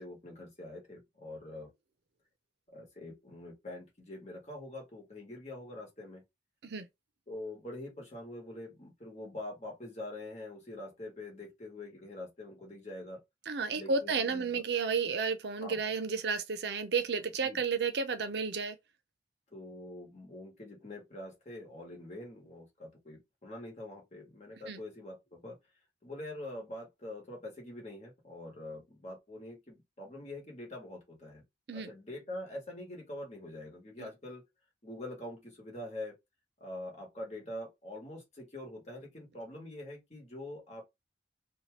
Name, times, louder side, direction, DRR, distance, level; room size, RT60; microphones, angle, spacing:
voice 1, 0.0-1.7 2.7-6.2 7.3-13.2 13.7-14.6 15.6-15.8 17.4-17.6 19.5-25.6 26.0-31.4 31.7-34.4 34.8-36.2 36.6-40.8, left 1 dB, 35° left, 1.2 m, -44 dB
voice 2, 13.5-18.8 24.7-24.8 31.7-31.9 34.0-34.1, right 5 dB, 70° right, 0.5 m, -32 dB
2.8 x 2.3 x 3.1 m
head